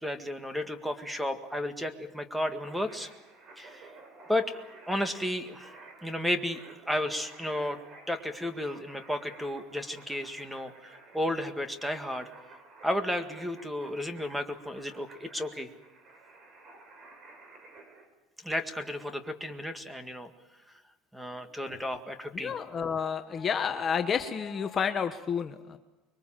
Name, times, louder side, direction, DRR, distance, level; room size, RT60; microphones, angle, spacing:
voice 1, 0.0-3.1 3.6-3.9 4.3-6.6 6.9-7.8 8.1-10.7 11.1-12.3 12.8-15.7 18.4-20.3 21.1-22.5, left 1 dB, 5° right, 8 dB, 1.8 m, -33 dB
sound 1, 2.6-18.1, right 3 dB, 40° right, 6.1 m, -53 dB
voice 2, 22.3-25.8, left 7 dB, 30° left, 7 dB, 1.1 m, -30 dB
25.0 x 22.5 x 7.5 m, 1.1 s
supercardioid pair, 130°, 0 cm